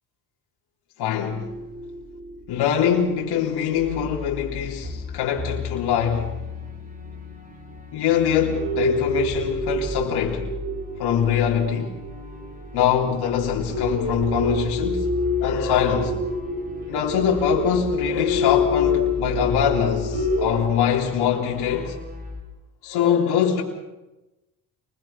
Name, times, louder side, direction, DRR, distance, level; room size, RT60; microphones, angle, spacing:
voice 1, 1.0-1.5 2.5-6.3 7.9-10.5 11.0-12.0 12.7-15.1 15.4-16.2 16.9-22.0 22.8-23.6, left 8 dB, 70° left, 3.7 m, -23 dB
sound 1, 1.3-5.2 5.7-5.8 6.8-6.9 7.5-7.6 8.0-8.2 8.5-20.6, left 3 dB, 65° right, 4.8 m, -28 dB
sound 2, 3.7-22.4, left 2 dB, 20° right, 6.1 m, -36 dB
28.5 x 21.0 x 5.9 m
supercardioid pair, 85°, 40 cm